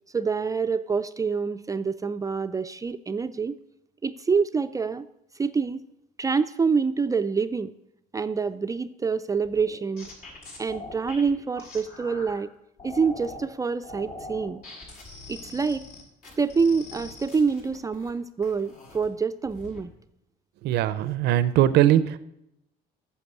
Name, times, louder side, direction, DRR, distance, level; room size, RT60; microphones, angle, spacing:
voice 1, 0.1-3.6 4.0-5.1 5.3-5.9 6.2-7.7 8.1-10.1 10.6-12.5 12.8-14.6 15.3-15.9 16.4-19.9, right 5 dB, 20° right, 10 dB, 0.4 m, -26 dB
sound 1, 9.4-12.3 12.8-13.5 13.8-18.1 18.4-19.1 19.5-19.8, left 2 dB, 65° left, 5.5 m, -43 dB
voice 2, 20.6-22.2, right 12 dB, 80° right, 14 dB, 0.6 m, -20 dB
9.9 x 7.1 x 8.1 m, 0.80 s
cardioid pair, 110°, 17 cm